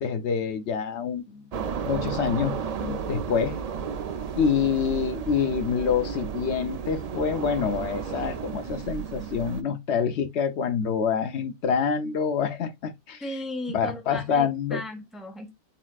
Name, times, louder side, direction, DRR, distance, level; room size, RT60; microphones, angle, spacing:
voice 1, 0.0-1.4 1.8-2.5 2.8-3.6 4.4-13.2 13.7-14.8, left 6 dB, 75° left, 1.0 m, -26 dB
sound 1, 1.5-9.6, right 6 dB, 55° right, 0.4 m, -33 dB
voice 2, 13.2-15.5, left 1 dB, ahead, 0.8 m, -36 dB
4.2 x 4.1 x 2.3 m
omnidirectional pair, 1.2 m